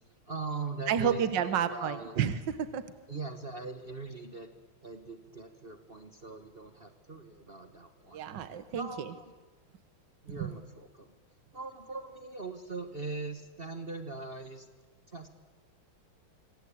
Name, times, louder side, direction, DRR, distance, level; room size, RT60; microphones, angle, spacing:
voice 1, 0.1-2.1 3.1-4.5 4.8-8.2 8.7-9.2 10.2-11.1 11.5-14.7 15.1-15.3, right 3 dB, 30° right, 8 dB, 1.5 m, -41 dB
voice 2, 0.9-2.8 8.1-9.1 10.4-10.5, right 8 dB, 65° right, 12 dB, 1.9 m, -30 dB
26.0 x 25.0 x 8.7 m, 1.3 s
omnidirectional pair, 2.2 m